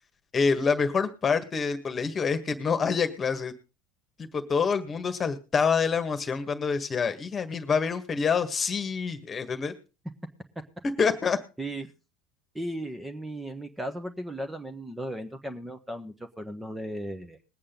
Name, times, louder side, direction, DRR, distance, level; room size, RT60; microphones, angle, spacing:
voice 1, 0.3-3.5 4.2-9.7 11.0-11.4, left 5 dB, 30° left, 9 dB, 1.7 m, -26 dB
voice 2, 12.5-17.5, right 1 dB, 10° right, 8 dB, 1.4 m, -36 dB
21.0 x 8.6 x 3.9 m, 0.33 s
figure-of-eight pair, 70°, 0 cm